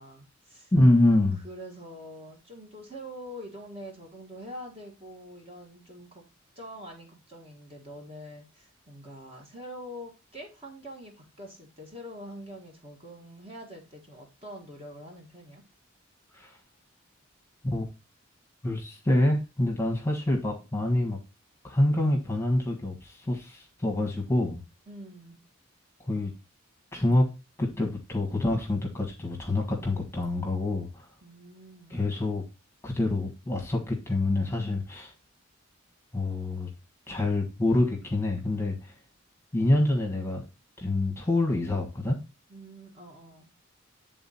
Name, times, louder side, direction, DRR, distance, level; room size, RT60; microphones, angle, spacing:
voice 1, 0.0-0.7 1.3-6.3 6.6-15.6 24.9-25.4 31.2-32.0 42.5-43.5, equal, 30° right, 0 dB, 1.8 m, -45 dB
voice 2, 0.7-1.4 16.3-16.5 17.7-17.8 18.6-21.2 21.6-24.6 26.1-26.3 26.9-27.2 27.6-31.0 31.9-32.4 32.8-35.1 36.1-36.7 37.1-38.8 39.5-40.4 40.8-42.2, left 1 dB, 15° left, 0 dB, 1.4 m, -26 dB
9.4 x 3.8 x 4.2 m, 0.27 s
head